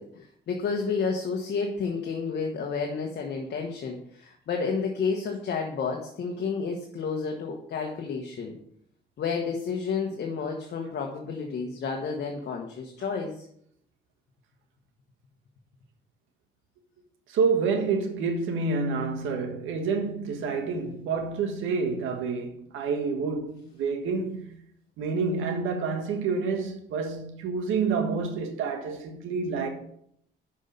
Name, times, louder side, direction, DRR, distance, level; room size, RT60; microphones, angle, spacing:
voice 1, 0.0-8.5 9.2-13.5, left 5 dB, 60° left, 1.2 m, -31 dB
voice 2, 17.3-24.5 25.0-29.7, right 4 dB, 90° right, 1.4 m, -28 dB
6.2 x 5.4 x 6.7 m
cardioid pair, 90°, 20 cm